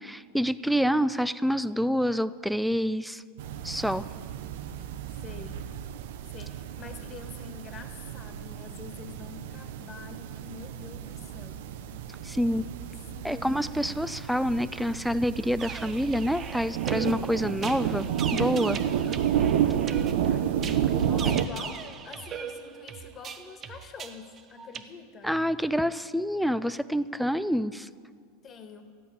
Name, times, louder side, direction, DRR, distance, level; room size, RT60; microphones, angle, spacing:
voice 1, 0.0-3.2 3.6-4.1 12.2-12.6 13.2-18.8 21.2-21.4 25.2-27.9, equal, ahead, 14 dB, 0.4 m, -27 dB
sound 1, 3.4-21.5, right 9 dB, 70° right, 0.8 m, -31 dB
voice 2, 5.2-5.6 6.3-11.7 12.1-12.2 12.5-14.0 18.9-19.2 19.9-20.6 21.0-25.3 28.4-28.9, left 5 dB, 30° left, 6 dB, 1.5 m, -46 dB
sound 2, 15.6-24.8, right 7 dB, 30° right, 0.8 m, -40 dB
14.0 x 8.6 x 9.9 m, 2.1 s
supercardioid pair, 135°, 0 cm